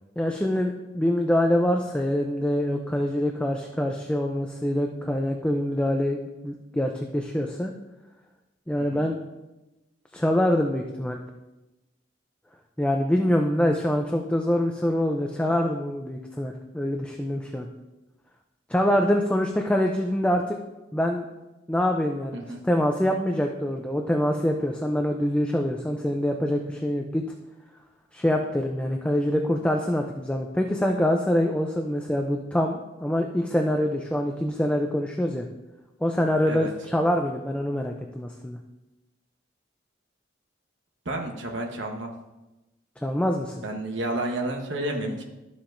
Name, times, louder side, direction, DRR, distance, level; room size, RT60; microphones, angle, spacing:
voice 1, 0.2-7.7 8.7-9.2 10.1-11.2 12.8-17.7 18.7-20.6 20.9-21.3 21.7-27.2 28.1-35.5 36.0-38.6 43.0-43.5, left 1 dB, 5° left, 2 dB, 0.4 m, -25 dB
voice 2, 41.0-42.1 43.6-45.2, right 1 dB, 70° right, 1 dB, 1.1 m, -31 dB
12.0 x 7.2 x 2.6 m, 1.0 s
head